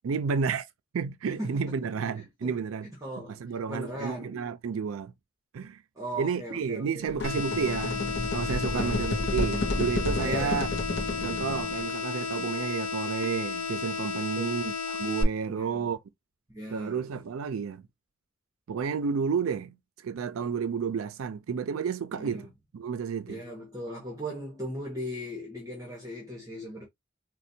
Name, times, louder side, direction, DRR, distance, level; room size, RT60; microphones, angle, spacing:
voice 1, 0.0-0.7 0.9-2.9 3.3-5.1 5.5-5.8 6.2-8.0 8.3-10.7 11.2-16.0 16.7-17.8 18.7-19.8 20.0-22.5 22.7-23.4, right 6 dB, 85° right, 0.4 m, -31 dB
voice 2, 1.3-1.6 2.4-2.5 3.0-3.4 3.7-4.3 6.0-7.0 8.7-9.1 10.2-10.6 14.4-14.6 15.5-15.9 16.5-17.0 22.2-22.5 23.3-26.9, equal, 15° right, 1.0 m, -38 dB
sound 1, 7.0-11.9, left 2 dB, 55° left, 0.6 m, -31 dB
sound 2, 7.2-15.2, left 5 dB, 80° left, 0.8 m, -33 dB
4.2 x 2.1 x 2.7 m
head